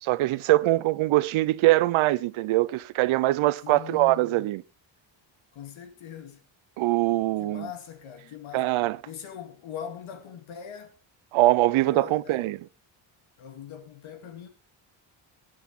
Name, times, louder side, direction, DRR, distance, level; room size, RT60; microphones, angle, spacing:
voice 1, 0.0-4.6 6.8-7.7 8.5-9.0 11.3-12.6, right 17 dB, 85° right, 0.7 m, -23 dB
voice 2, 3.6-4.5 5.5-6.4 7.4-8.7 9.1-10.9 11.8-12.6 13.4-14.5, left 9 dB, 80° left, 2.3 m, -41 dB
19.5 x 8.0 x 3.7 m
cardioid pair, 160°, 47 cm